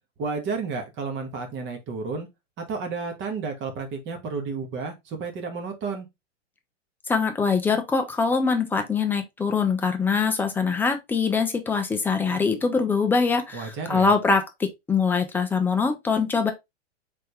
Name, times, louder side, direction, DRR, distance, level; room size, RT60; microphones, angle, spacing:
voice 1, 0.2-2.3 2.6-6.1 13.5-14.1, right 4 dB, 30° right, 1.6 m, -31 dB
voice 2, 7.1-16.5, left 5 dB, 5° left, 0.3 m, -23 dB
4.0 x 3.6 x 3.3 m
hypercardioid pair, 125°, 37 cm